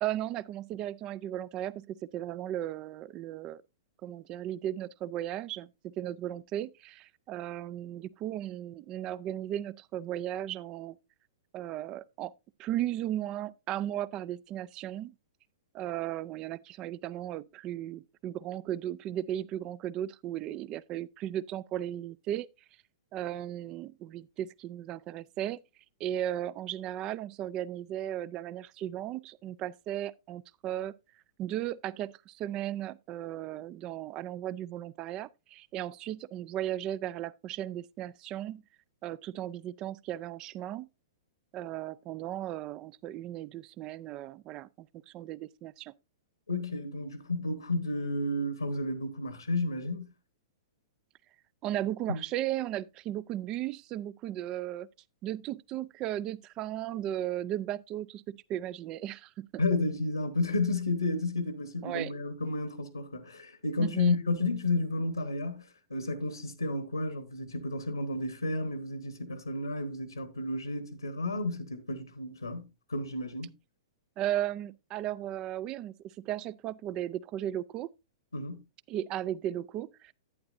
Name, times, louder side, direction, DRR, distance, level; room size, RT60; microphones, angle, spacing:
voice 1, 0.0-3.6 4.0-11.0 11.5-12.3 12.6-15.1 15.7-22.5 23.1-25.6 26.0-30.9 31.4-38.6 39.0-40.9 41.5-44.9 45.1-45.9 51.6-54.9 55.2-59.6 61.8-62.1 63.8-64.2 74.2-77.9 78.9-80.1, right 12 dB, 30° right, 0.4 m, -36 dB
voice 2, 46.5-50.1 52.1-52.2 59.6-73.5 78.3-78.6, left 2 dB, 90° left, 1.2 m, -32 dB
11.0 x 9.5 x 2.6 m
figure-of-eight pair, 105°, 2 cm